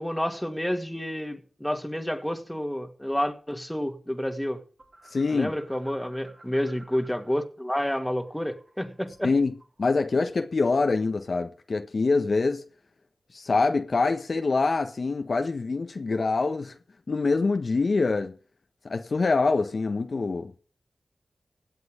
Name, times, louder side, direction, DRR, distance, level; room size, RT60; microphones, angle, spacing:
voice 1, 0.0-4.6 5.3-9.3, equal, 5° left, 2.2 m, -29 dB
sound 1, 4.8-7.4 7.6-9.9, right 2 dB, 50° right, 6.5 m, -55 dB
voice 2, 5.1-5.5 9.2-12.6 13.3-16.8 17.1-18.4 18.8-20.5, left 3 dB, 60° left, 1.3 m, -25 dB
16.5 x 8.0 x 5.1 m
cardioid pair, 45°, 0 cm